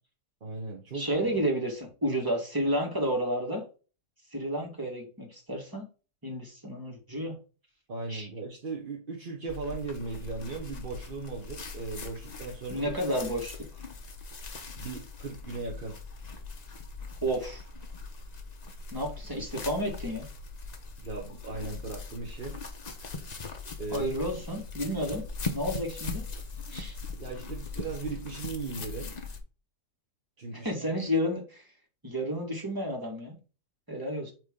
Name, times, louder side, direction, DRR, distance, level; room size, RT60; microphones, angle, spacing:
voice 1, 0.4-1.1 7.9-12.9 14.8-16.0 21.0-22.6 23.8-24.1 27.2-29.1 30.4-30.9, right 3 dB, 40° right, 0.9 m, -37 dB
voice 2, 0.9-3.6 4.3-5.8 6.2-7.4 8.1-8.3 12.7-13.8 17.2-17.6 18.9-20.3 23.9-25.2 25.5-26.2 26.7-27.0 30.5-31.7 32.0-33.4 33.9-34.3, equal, 15° right, 1.6 m, -31 dB
sound 1, 9.5-29.4, left 3 dB, 55° left, 0.4 m, -40 dB
9.0 x 3.1 x 3.7 m
omnidirectional pair, 1.9 m